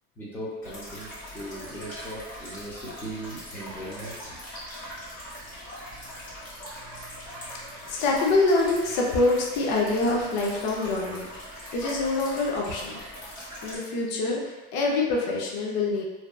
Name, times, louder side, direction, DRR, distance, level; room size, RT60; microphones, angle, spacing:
voice 1, 0.2-4.4, right 1 dB, 5° left, -10 dB, 0.6 m, -38 dB
sound 1, 0.6-13.8, equal, 25° left, 1.2 m, -41 dB
voice 2, 7.9-11.3 11.7-13.0 13.6-16.0, left 2 dB, 60° left, -2 dB, 0.6 m, -25 dB
2.7 x 2.2 x 2.3 m, 1.2 s
cardioid pair, 145°, 29 cm